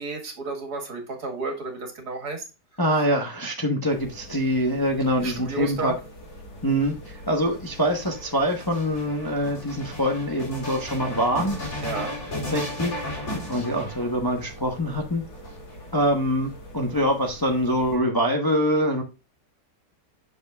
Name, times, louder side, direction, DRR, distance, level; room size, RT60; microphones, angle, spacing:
voice 1, 0.0-2.4 2.9-3.1 5.2-6.0 11.8-12.1, right 3 dB, 70° right, 2.3 m, -32 dB
voice 2, 2.8-5.9 6.6-11.6 12.5-12.9 13.5-15.2 15.9-19.0, equal, 15° left, 0.8 m, -24 dB
sound 1, 3.9-18.0, equal, 75° left, 2.9 m, -44 dB
sound 2, 6.6-14.5 15.3-16.2, left 1 dB, 50° left, 4.0 m, -35 dB
8.1 x 6.3 x 2.3 m
omnidirectional pair, 1.8 m